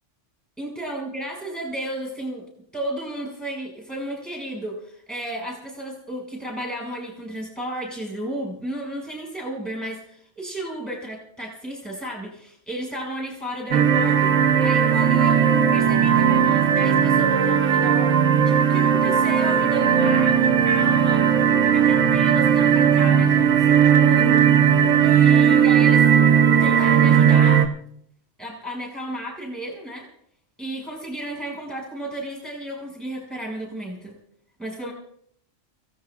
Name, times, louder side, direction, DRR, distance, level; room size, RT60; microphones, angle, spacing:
voice 1, 0.6-2.4 2.7-14.3 14.6-18.1 18.4-21.3 21.6-24.4 25.0-26.1 26.6-27.7 28.4-30.1 30.6-34.2 34.6-34.9, right 1 dB, ahead, -1 dB, 6.3 m, -32 dB
sound 1, 13.7-27.7, right 8 dB, 80° right, 1.3 m, -17 dB
29.5 x 17.0 x 2.5 m, 0.68 s
omnidirectional pair, 1.3 m